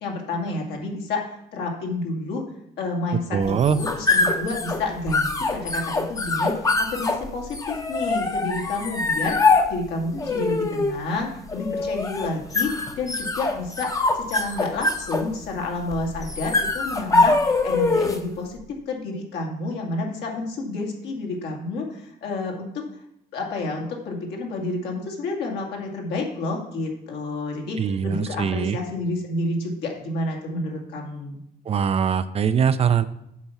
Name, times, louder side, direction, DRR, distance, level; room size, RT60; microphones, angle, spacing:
voice 1, 0.0-2.4 2.8-22.8 23.3-31.4, left 2 dB, 75° left, 0 dB, 2.2 m, -30 dB
voice 2, 3.3-3.8 27.8-28.8 31.7-33.0, right 7 dB, 35° right, 12 dB, 0.5 m, -22 dB
sound 1, 3.4-18.3, left 3 dB, 20° left, 0.8 m, -24 dB
8.2 x 4.5 x 7.1 m, 0.76 s
cardioid pair, 110°, 17 cm